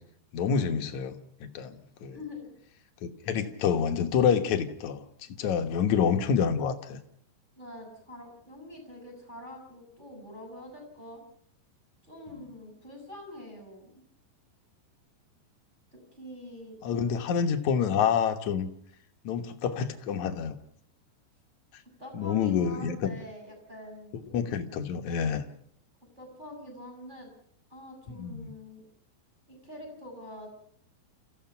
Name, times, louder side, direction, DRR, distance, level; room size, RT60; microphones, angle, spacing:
voice 1, 0.3-2.2 3.0-5.0 5.4-7.0 16.8-18.7 19.2-20.6 21.7-21.8 22.1-23.2 24.3-25.4 28.2-28.5, left 7 dB, 65° left, 6 dB, 2.0 m, -27 dB
voice 2, 2.1-2.5 7.5-11.2 12.0-14.0 16.1-17.3 22.0-24.3 26.2-27.3 27.7-28.8 29.5-30.5, left 1 dB, 10° right, 3 dB, 6.6 m, -45 dB
29.5 x 15.5 x 5.8 m, 0.64 s
omnidirectional pair, 5.0 m